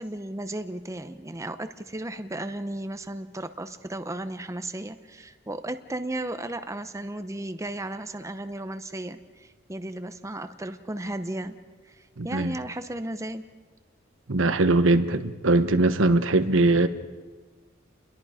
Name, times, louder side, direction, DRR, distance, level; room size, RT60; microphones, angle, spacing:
voice 1, 0.0-11.6 11.9-13.4, right 1 dB, 15° right, 9 dB, 0.8 m, -35 dB
voice 2, 12.2-12.5 14.3-16.9, right 2 dB, 80° right, 10 dB, 1.1 m, -21 dB
29.5 x 22.0 x 5.0 m, 1.3 s
head